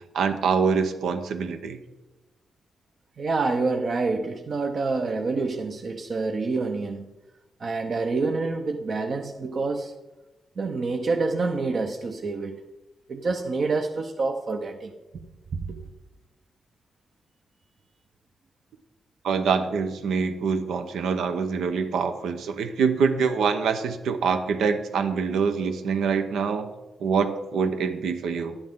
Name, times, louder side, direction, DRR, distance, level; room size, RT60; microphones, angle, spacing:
voice 1, 0.1-1.8 19.2-26.7 27.0-28.6, right 5 dB, 90° right, 8 dB, 0.9 m, -25 dB
voice 2, 3.2-7.1 7.6-9.9 10.6-12.6 13.1-15.3 15.7-15.8, right 3 dB, 55° right, 4 dB, 0.8 m, -27 dB
11.5 x 10.0 x 3.7 m, 1.1 s
cardioid pair, 80°, 0 cm